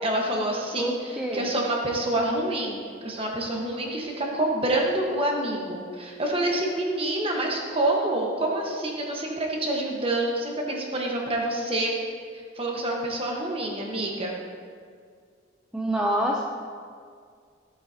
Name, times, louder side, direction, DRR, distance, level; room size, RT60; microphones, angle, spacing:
voice 1, 0.0-11.9 12.3-14.3, right 1 dB, 30° right, -1 dB, 1.2 m, -27 dB
voice 2, 0.8-1.5 15.7-16.4, right 1 dB, 5° right, -2 dB, 0.5 m, -26 dB
13.5 x 7.9 x 2.8 m, 2.1 s
head